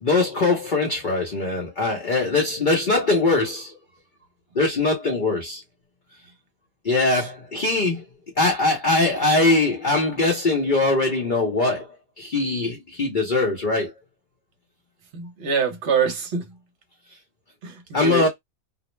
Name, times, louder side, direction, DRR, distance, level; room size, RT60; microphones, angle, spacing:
voice 1, 0.0-3.8 4.6-5.6 6.8-8.0 8.4-11.9 12.2-13.9 17.9-18.3, left 2 dB, 45° left, 0.7 m, -21 dB
voice 2, 15.1-16.5 17.6-18.3, right 5 dB, 55° right, 0.9 m, -25 dB
2.5 x 2.0 x 3.0 m
omnidirectional pair, 1.5 m